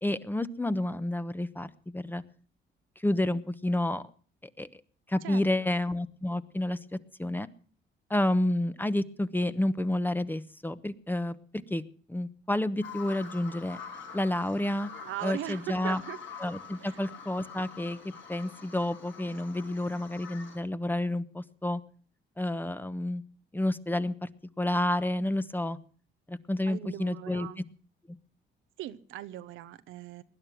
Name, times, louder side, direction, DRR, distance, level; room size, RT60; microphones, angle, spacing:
voice 1, 0.0-2.2 3.0-4.0 4.6-4.7 5.1-6.8 7.2-7.5 8.1-11.3 11.7-11.8 12.1-13.8 14.1-14.9 15.2-16.0 16.4-18.0 18.3-21.8 22.4-23.2 23.5-24.1 24.6-25.8 26.3-27.5, left 1 dB, 10° left, 1.0 m, -29 dB
voice 2, 5.2-5.7 15.0-16.2 16.8-17.0 26.7-27.6 28.8-30.2, right 13 dB, 90° right, 1.0 m, -39 dB
Bird vocalization bird call bird song, 12.8-20.6, left 5 dB, 75° left, 5.8 m, -46 dB
20.0 x 11.0 x 6.0 m
cardioid pair, 90°, 20 cm